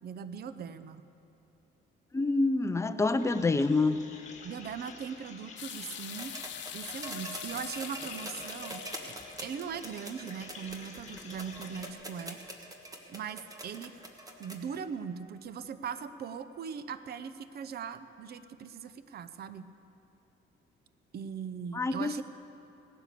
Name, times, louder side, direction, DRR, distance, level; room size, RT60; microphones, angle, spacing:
voice 1, 0.0-1.0 4.4-6.4 6.7-9.1 9.4-12.4 13.1-13.9 14.4-19.7 21.1-22.2, right 7 dB, 50° right, 13 dB, 0.7 m, -40 dB
voice 2, 2.1-4.0 21.7-22.2, left 3 dB, 15° left, 9 dB, 0.6 m, -27 dB
sound 1, 3.2-11.9, left 4 dB, 35° left, 2.0 m, -50 dB
sound 2, 5.6-12.4, left 10 dB, 60° left, 0.8 m, -45 dB
sound 3, 6.1-14.8 16.0-16.1, right 1 dB, 15° right, 1.5 m, -44 dB
17.5 x 9.8 x 6.8 m, 2.9 s
cardioid pair, 115°, 21 cm